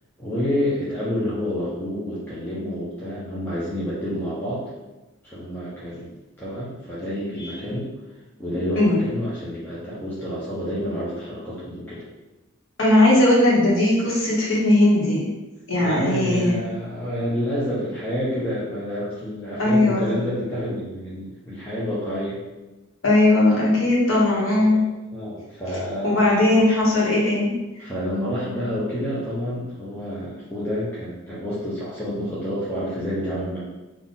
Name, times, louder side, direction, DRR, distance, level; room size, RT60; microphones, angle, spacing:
voice 1, 0.2-4.6 5.2-6.1 6.4-7.9 8.4-12.0 15.8-22.4 24.1-24.4 24.7-26.2 27.8-33.6, equal, 10° left, -9 dB, 0.7 m, -29 dB
voice 2, 12.8-15.2 15.7-16.6 19.6-20.1 23.0-24.8 26.0-27.5, left 1 dB, 70° left, -4 dB, 1.2 m, -18 dB
3.8 x 2.5 x 3.9 m, 1.1 s
head